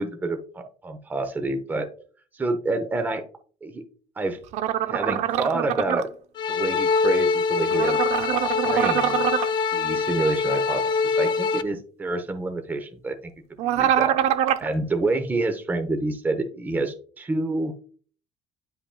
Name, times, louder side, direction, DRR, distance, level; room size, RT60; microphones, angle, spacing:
voice 1, 0.0-1.9 2.3-3.2 3.6-3.8 4.2-4.4 4.9-6.1 6.5-8.0 8.6-9.2 9.7-13.3 13.6-14.2 14.6-17.7, right 2 dB, 15° right, 6 dB, 0.7 m, -28 dB
sound 1, 4.5-6.0 7.7-9.5 13.6-14.7, right 10 dB, 60° right, 0.5 m, -24 dB
sound 2, 6.4-11.6, left 5 dB, 35° left, 0.5 m, -24 dB
9.9 x 5.7 x 2.2 m, 0.42 s
cardioid pair, 170°, 13 cm